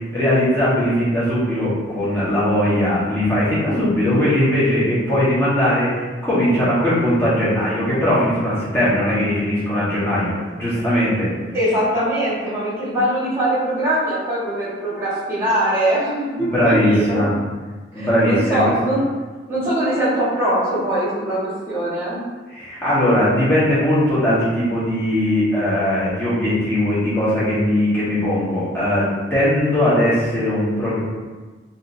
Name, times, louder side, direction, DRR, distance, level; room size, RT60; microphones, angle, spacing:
voice 1, 0.0-11.3 16.4-17.4 17.9-18.7 22.5-31.0, left 1 dB, 15° left, -11 dB, 1.1 m, -19 dB
voice 2, 11.5-17.2 17.9-19.0 19.5-22.2, right 1 dB, 15° right, -10 dB, 1.4 m, -22 dB
3.5 x 2.7 x 2.5 m, 1.3 s
head